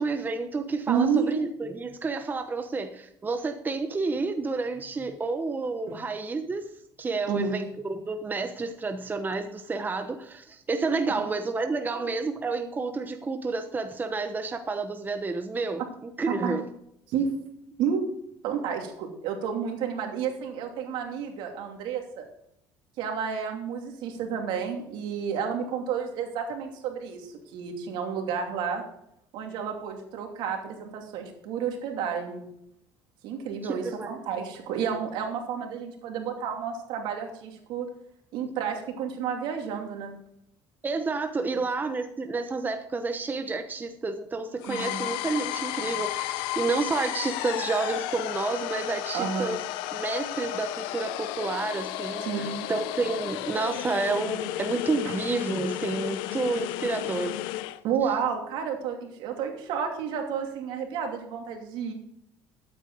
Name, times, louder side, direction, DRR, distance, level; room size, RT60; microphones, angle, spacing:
voice 1, 0.0-6.7 7.0-16.7 33.6-34.2 40.8-49.6 49.9-57.4 58.0-58.1, right 3 dB, 20° right, 7 dB, 1.0 m, -30 dB
voice 2, 0.9-1.3 5.9-6.0 7.3-7.6 11.9-12.0 16.4-16.5 17.1-17.3 17.8-18.0 18.4-22.3 23.0-28.8 29.3-32.5 33.2-37.9 38.3-40.2 44.7-45.0 49.1-49.5 52.2-52.7 55.0-55.1 57.8-61.9, right 7 dB, 75° right, 3 dB, 2.7 m, -31 dB
sound 1, 44.6-57.8, left 15 dB, 80° left, 0.6 m, -33 dB
13.0 x 8.7 x 3.9 m, 0.75 s
supercardioid pair, 100°, 8 cm